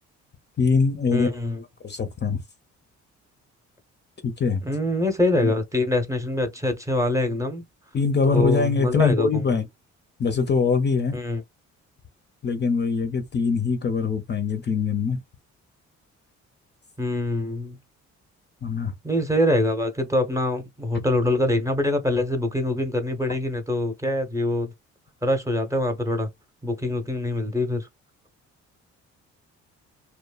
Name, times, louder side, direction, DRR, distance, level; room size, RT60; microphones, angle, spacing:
voice 1, 0.6-1.3 1.8-2.4 4.2-4.6 5.4-5.5 7.9-9.7 10.2-11.2 12.4-15.2 18.6-18.9 20.9-21.0, left 5 dB, 35° left, 0.6 m, -23 dB
voice 2, 1.1-1.6 4.6-7.6 8.3-9.6 11.1-11.4 17.0-17.8 19.0-24.7 25.2-26.3 26.6-27.9, left 1 dB, 10° right, 0.8 m, -24 dB
2.9 x 2.1 x 2.3 m
cardioid pair, 90°, 30 cm